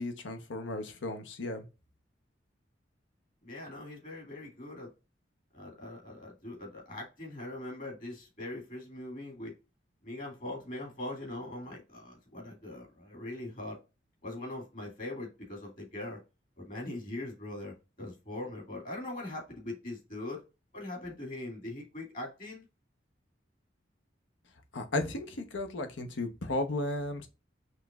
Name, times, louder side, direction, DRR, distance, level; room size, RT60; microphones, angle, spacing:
voice 1, 0.0-1.6 24.7-27.3, left 2 dB, 85° left, 0.9 m, -34 dB
voice 2, 3.4-4.9 5.5-9.5 10.0-13.8 14.2-16.2 16.6-20.4 20.7-22.7, left 1 dB, 45° left, 2.1 m, -41 dB
5.6 x 3.1 x 2.4 m
head